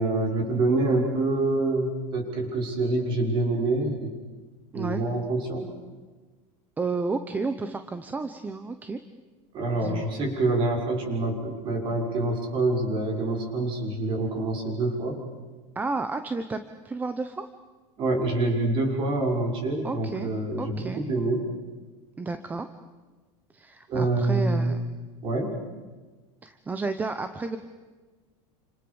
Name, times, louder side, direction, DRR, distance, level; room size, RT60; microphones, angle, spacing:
voice 1, 0.0-4.1 4.7-5.6 9.5-15.2 18.0-21.4 23.9-24.7 25.2-25.5, right 2 dB, 30° right, 2 dB, 6.4 m, -26 dB
voice 2, 6.8-9.0 9.8-10.1 15.7-17.5 19.8-20.3 20.6-21.0 22.2-22.7 23.5-24.8 26.4-27.6, right 3 dB, 10° right, 9 dB, 1.0 m, -31 dB
29.0 x 27.0 x 7.1 m, 1.3 s
supercardioid pair, 165°, 15 cm